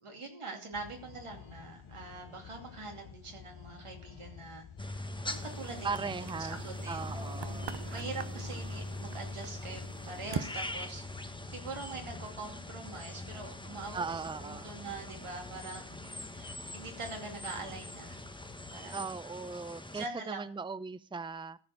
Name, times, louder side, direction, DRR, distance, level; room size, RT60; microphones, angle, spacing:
voice 1, 0.0-6.1 6.4-18.2 18.7-19.0 19.9-20.5, right 3 dB, 85° right, 2 dB, 2.8 m, -44 dB
sound 1, 0.7-18.8, left 8 dB, 75° left, 1.0 m, -52 dB
sound 2, 4.8-20.1, left 1 dB, 10° left, 1.2 m, -42 dB
sound 3, 5.2-10.5, right 6 dB, 55° right, 0.9 m, -44 dB
voice 2, 5.8-6.6 6.9-7.7 13.9-14.8 18.9-21.6, right 4 dB, 10° right, 15 dB, 0.6 m, -38 dB
14.0 x 4.7 x 7.7 m, 0.43 s
cardioid pair, 40°, 50 cm